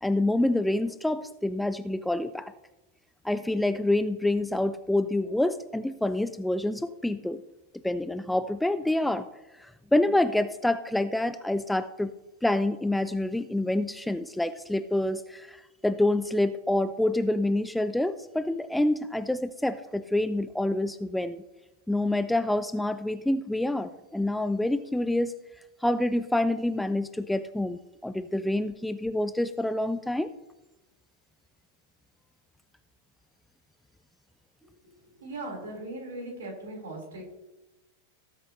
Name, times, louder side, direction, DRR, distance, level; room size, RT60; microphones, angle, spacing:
voice 1, 0.0-2.5 3.2-7.4 7.8-9.2 9.6-12.1 12.4-21.4 21.9-25.3 25.8-30.3, left 1 dB, 5° left, 12 dB, 0.4 m, -27 dB
voice 2, 34.8-37.2, right 2 dB, 65° right, 0 dB, 4.2 m, -39 dB
18.0 x 8.3 x 3.1 m, 1.0 s
figure-of-eight pair, 90°, 0 cm